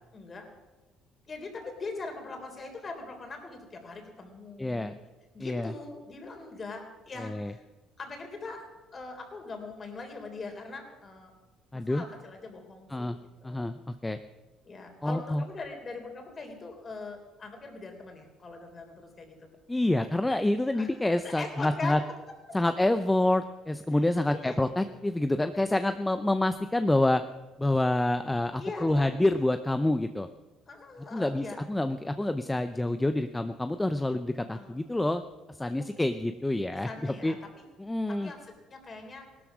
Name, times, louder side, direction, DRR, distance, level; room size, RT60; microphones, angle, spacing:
voice 1, 0.1-0.5 1.3-4.9 5.3-7.6 8.0-11.3 11.7-13.7 14.6-19.5 20.7-20.9 21.2-22.0 23.9-24.0 24.3-24.5 28.6-29.2 30.7-31.6 34.5-34.7 35.8-35.9 36.8-37.3 38.2-38.4 38.7-39.3, left 3 dB, 30° left, 4 dB, 3.4 m, -41 dB
voice 2, 4.6-4.9 5.4-5.7 7.2-7.5 11.7-12.0 12.9-13.2 13.4-14.2 15.0-15.4 19.7-22.0 22.5-27.2 27.6-30.3 31.1-35.2 35.5-37.3 37.8-38.3, left 1 dB, 10° left, 9 dB, 0.6 m, -27 dB
17.5 x 12.5 x 6.1 m, 1.2 s
cardioid pair, 120°, 0 cm